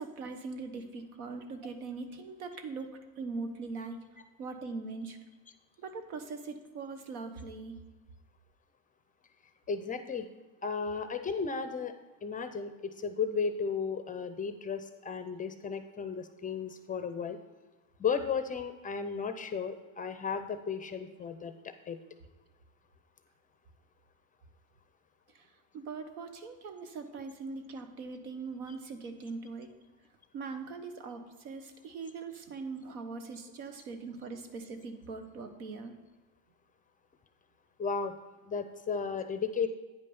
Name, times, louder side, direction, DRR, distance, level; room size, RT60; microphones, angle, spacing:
voice 1, 0.0-2.9 3.2-4.0 4.4-5.2 5.8-7.8 25.7-29.7 30.3-35.9, right 4 dB, 90° right, 7 dB, 1.2 m, -41 dB
voice 2, 9.7-10.3 10.6-12.0 12.2-17.4 18.0-22.0 37.8-38.1 38.5-39.7, left 5 dB, 20° left, 10 dB, 0.5 m, -34 dB
9.3 x 5.4 x 5.3 m, 1.2 s
supercardioid pair, 120°, 42 cm